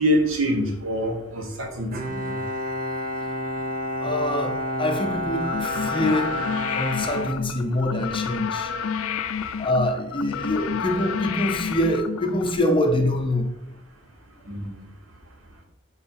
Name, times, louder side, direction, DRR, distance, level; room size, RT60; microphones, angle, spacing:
voice 1, 0.0-2.4 14.5-14.8, equal, 70° right, 2 dB, 1.2 m, -25 dB
Bowed string instrument, 1.9-8.1, left 1 dB, 45° right, 0.8 m, -30 dB
voice 2, 4.0-6.4 6.7-8.7 9.6-13.5, left 1 dB, 25° left, 4 dB, 0.6 m, -25 dB
sound 1, 5.4-12.6, left 6 dB, 75° left, 0.4 m, -30 dB
5.6 x 3.9 x 4.3 m, 0.85 s
head